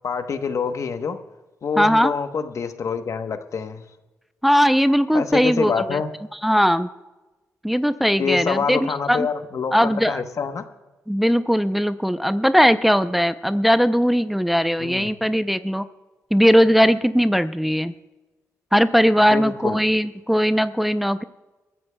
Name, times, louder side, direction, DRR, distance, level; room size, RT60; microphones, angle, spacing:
voice 1, 0.0-1.2 1.6-3.8 5.1-6.1 8.2-10.6 14.8-15.1 19.3-19.8, left 5 dB, 60° left, 8 dB, 1.0 m, -26 dB
voice 2, 1.8-2.1 4.4-6.0 6.4-6.9 7.6-9.3 9.7-10.2 11.1-15.8 16.3-17.9 18.7-21.2, equal, ahead, 11 dB, 0.6 m, -19 dB
23.0 x 14.0 x 2.3 m, 1.1 s
cardioid pair, 65°, 6 cm